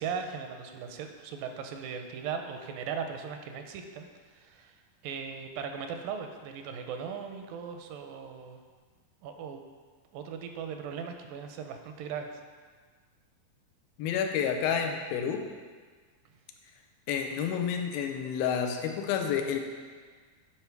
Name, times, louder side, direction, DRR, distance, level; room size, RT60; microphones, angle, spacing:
voice 1, 0.0-4.8 5.0-8.6 9.2-9.6 10.1-12.4, right 6 dB, 80° right, 6 dB, 2.3 m, -38 dB
voice 2, 14.0-15.5 17.1-19.6, left 7 dB, 90° left, 5 dB, 2.5 m, -29 dB
9.0 x 5.5 x 4.6 m, 1.5 s
omnidirectional pair, 4.1 m